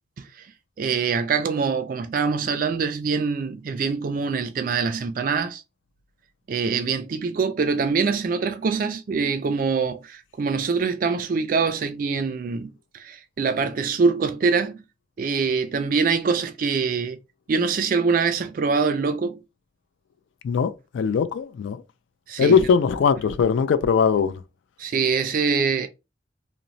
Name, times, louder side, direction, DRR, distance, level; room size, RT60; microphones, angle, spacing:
voice 1, 0.8-5.6 6.5-14.8 15.2-17.2 17.5-19.4 22.3-22.7 24.8-25.9, right 5 dB, 45° right, 0.3 m, -24 dB
voice 2, 20.4-21.8 22.4-24.4, left 6 dB, 75° left, 0.3 m, -20 dB
3.0 x 2.0 x 2.5 m
head